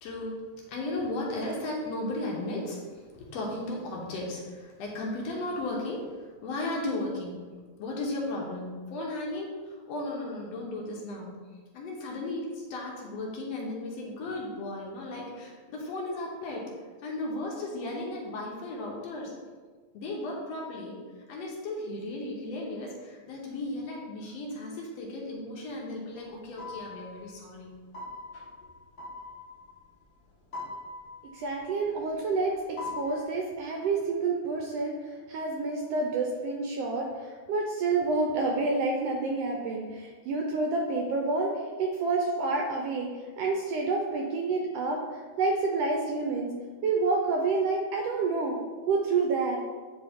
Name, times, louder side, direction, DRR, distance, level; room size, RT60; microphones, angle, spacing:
voice 1, 0.0-0.4 0.7-7.4 7.8-11.3 11.7-16.7 17.0-19.3 19.9-21.0 21.3-27.7, left 2 dB, 70° left, -2 dB, 1.9 m, -35 dB
sound 1, 26.2-30.3 30.5-32.2 32.5-33.2, left 3 dB, 55° left, 1.1 m, -42 dB
voice 2, 31.3-46.5 46.8-48.6 48.9-49.6, right 3 dB, 75° right, 0 dB, 1.5 m, -28 dB
9.3 x 3.1 x 3.5 m, 1.4 s
omnidirectional pair, 3.3 m